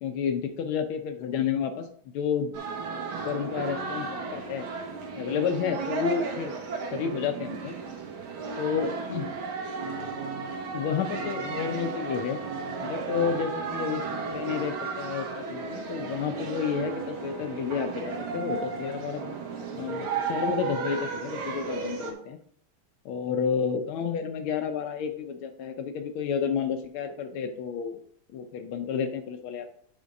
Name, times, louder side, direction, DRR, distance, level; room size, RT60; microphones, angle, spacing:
voice 1, 0.0-1.9 2.1-2.5 3.2-4.6 5.2-6.5 6.9-7.7 8.6-9.3 10.7-12.4 12.8-14.0 14.3-19.3 19.7-22.4 23.0-28.0 28.3-29.7, left 7 dB, 85° left, 7 dB, 1.6 m, -30 dB
sound 1, 2.5-22.1, right 4 dB, 85° right, 2.0 m, -34 dB
9.6 x 3.6 x 5.2 m, 0.63 s
omnidirectional pair, 2.2 m